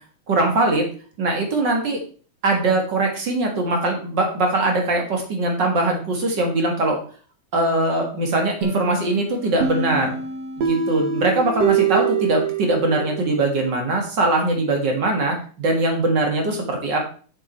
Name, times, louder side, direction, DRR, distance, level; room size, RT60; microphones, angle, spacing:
voice 1, 0.3-0.8 1.2-2.0 2.4-7.0 7.5-10.2 10.6-17.0, right 2 dB, 40° right, 2 dB, 2.1 m, -21 dB
sound 1, 8.6-13.3, right 6 dB, 60° right, 2.6 m, -24 dB
7.2 x 7.0 x 4.5 m, 0.41 s
omnidirectional pair, 3.3 m